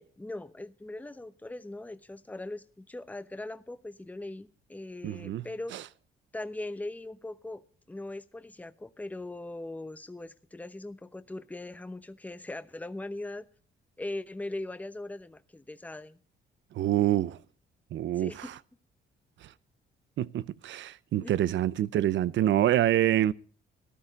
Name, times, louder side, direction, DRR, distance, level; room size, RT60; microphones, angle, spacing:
voice 1, 0.0-5.7 6.3-7.6 7.9-13.4 14.0-16.2 18.2-18.5 21.2-21.3, left 2 dB, 10° left, 0.9 m, -40 dB
voice 2, 5.0-5.5 16.7-17.4 17.9-18.5 20.2-23.3, right 12 dB, 70° right, 0.7 m, -26 dB
14.5 x 12.5 x 5.2 m
cardioid pair, 90°, 20 cm